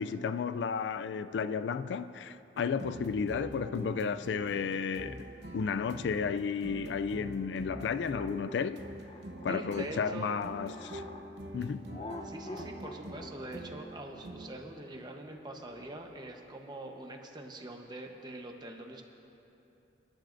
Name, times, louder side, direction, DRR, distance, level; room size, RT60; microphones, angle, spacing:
voice 1, 0.0-5.3 5.5-8.8 9.4-11.0 11.5-12.0, left 6 dB, 75° left, 0.3 m, -33 dB
sound 1, 2.5-14.5, right 1 dB, 70° right, 0.9 m, -45 dB
sound 2, 7.7-11.3 11.9-16.4, left 1 dB, 30° left, 0.7 m, -47 dB
voice 2, 9.5-10.3 12.2-19.0, right 1 dB, 25° right, 1.0 m, -43 dB
28.5 x 11.5 x 2.6 m
head